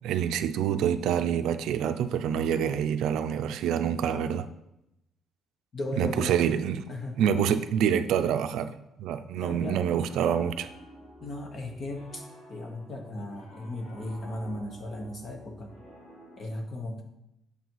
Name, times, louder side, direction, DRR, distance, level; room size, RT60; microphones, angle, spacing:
voice 1, 0.0-4.5 6.0-6.8 7.2-8.7 9.0-10.7, right 8 dB, 75° right, 0.4 m, -26 dB
voice 2, 5.7-6.4 6.9-7.2 9.4-9.8 11.2-12.2 12.5-15.7 16.4-17.0, left 1 dB, 35° left, 1.0 m, -36 dB
Piano, 9.9-16.4, equal, 70° left, 2.8 m, -50 dB
7.0 x 4.1 x 4.6 m
cardioid pair, 165°, 0 cm